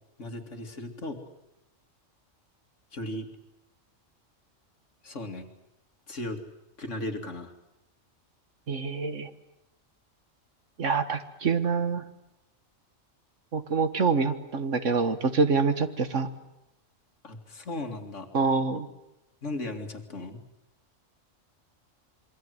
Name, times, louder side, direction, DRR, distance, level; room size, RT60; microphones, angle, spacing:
voice 1, 0.2-1.2 2.9-3.3 5.0-5.5 6.1-6.4 6.8-7.5 17.2-18.3 19.4-20.4, left 1 dB, 70° left, 5 dB, 2.8 m, -36 dB
voice 2, 8.7-9.3 10.8-12.1 13.5-16.3 18.3-18.9, right 4 dB, 70° right, 10 dB, 1.9 m, -26 dB
27.0 x 23.0 x 8.0 m, 0.89 s
omnidirectional pair, 1.3 m